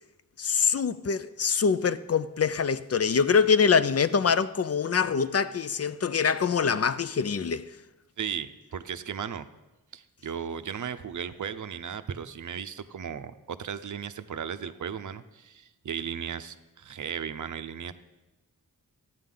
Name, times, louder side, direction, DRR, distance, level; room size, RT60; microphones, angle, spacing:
voice 1, 0.4-7.7, left 6 dB, 45° left, 0.5 m, -24 dB
voice 2, 8.2-9.5 9.9-17.9, right 7 dB, 55° right, 0.6 m, -36 dB
14.5 x 9.2 x 3.8 m
wide cardioid pair, 80°, 36 cm